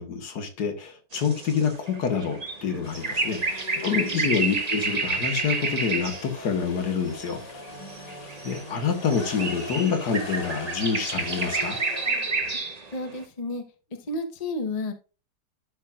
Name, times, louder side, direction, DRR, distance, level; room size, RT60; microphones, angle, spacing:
voice 1, 0.0-7.6 8.2-11.8, left 6 dB, 70° left, 1.9 m, -27 dB
sound 1, 1.1-6.4 6.7-13.1, right 3 dB, 30° right, 0.9 m, -30 dB
sound 2, 2.8-12.6, left 2 dB, 85° left, 2.5 m, -40 dB
voice 2, 3.9-4.3 7.7-8.3 12.9-13.6 13.9-14.9, left 2 dB, 30° left, 0.8 m, -33 dB
12.0 x 5.8 x 2.4 m
omnidirectional pair, 1.8 m